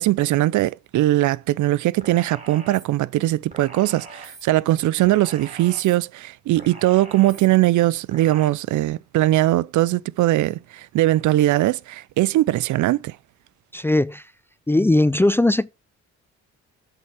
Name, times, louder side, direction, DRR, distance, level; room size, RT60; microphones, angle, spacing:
voice 1, 0.0-13.2, right 16 dB, 75° right, 0.6 m, -20 dB
sound 1, 2.0-2.8 3.5-4.4 5.0-6.0 6.6-7.5 8.1-8.5, right 3 dB, 25° right, 4.8 m, -41 dB
voice 2, 13.7-14.3 14.7-15.7, left 1 dB, 10° left, 0.3 m, -19 dB
8.1 x 4.8 x 5.7 m
cardioid pair, 90°, 30 cm